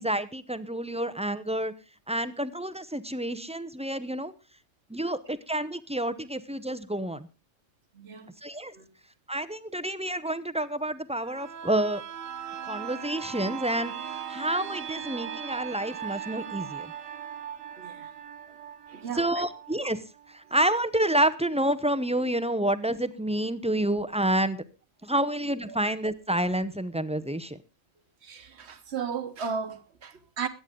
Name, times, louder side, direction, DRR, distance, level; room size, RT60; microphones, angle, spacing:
voice 1, 0.0-1.7 2.1-4.3 4.9-7.3 8.4-8.7 9.3-12.0 12.6-16.9 19.1-20.0 20.3-24.6 25.0-27.6, right 1 dB, 10° right, 0.4 m, -29 dB
voice 2, 7.9-8.3 8.7-8.9 17.8-18.1 18.9-19.4 25.7-25.8 28.2-30.5, right 6 dB, 55° right, 1.4 m, -35 dB
sound 1, 11.2-20.8 21.1-21.2, right 9 dB, 85° right, 1.3 m, -39 dB
21.5 x 9.3 x 3.7 m
omnidirectional pair, 1.3 m